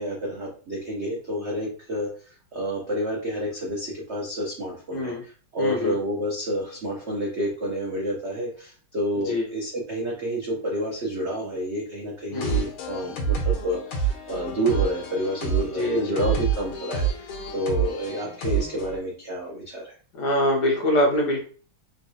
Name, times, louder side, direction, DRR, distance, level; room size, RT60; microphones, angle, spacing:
voice 1, 0.0-2.1 2.5-19.9, equal, 70° right, -3 dB, 0.6 m, -29 dB
voice 2, 5.6-5.9 9.3-9.5 12.3-12.7 15.7-16.2 18.5-18.6 20.2-21.4, left 1 dB, 70° left, 0 dB, 1.0 m, -24 dB
sound 1, 12.3-19.0, right 6 dB, 85° left, 1.7 m, -28 dB
3.9 x 2.3 x 2.7 m, 0.40 s
omnidirectional pair, 2.3 m